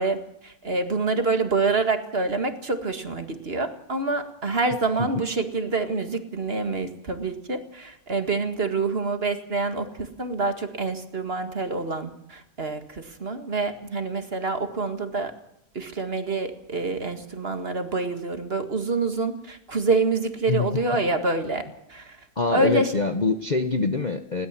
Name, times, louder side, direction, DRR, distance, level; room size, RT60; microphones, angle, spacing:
voice 1, 0.0-9.9 10.2-15.3 15.8-21.6 21.9-22.2 22.5-23.0, right 3 dB, 40° right, 8 dB, 2.0 m, -26 dB
voice 2, 22.4-24.5, left 4 dB, 35° left, 7 dB, 0.9 m, -24 dB
21.0 x 17.5 x 7.5 m, 0.74 s
omnidirectional pair, 1.7 m